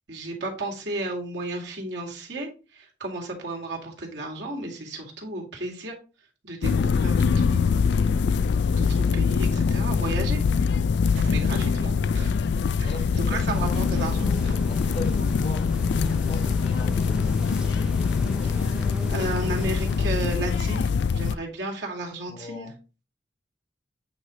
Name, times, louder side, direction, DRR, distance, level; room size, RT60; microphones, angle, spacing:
voice 1, 0.1-5.9 6.4-8.2 8.8-10.4 11.3-12.3 12.8-12.9 13.3-14.6 18.4-18.8 19.1-22.7, right 2 dB, 65° right, 2.3 m, -33 dB
sound 1, 6.6-21.4, left 5 dB, 60° left, 0.3 m, -23 dB
sound 2, 11.2-16.3, right 1 dB, 80° right, 1.6 m, -45 dB
voice 2, 12.8-13.6 14.7-17.0 22.3-22.8, left 1 dB, 30° left, 0.7 m, -38 dB
sound 3, 13.5-20.1, equal, 5° right, 0.5 m, -38 dB
8.7 x 3.1 x 4.9 m
head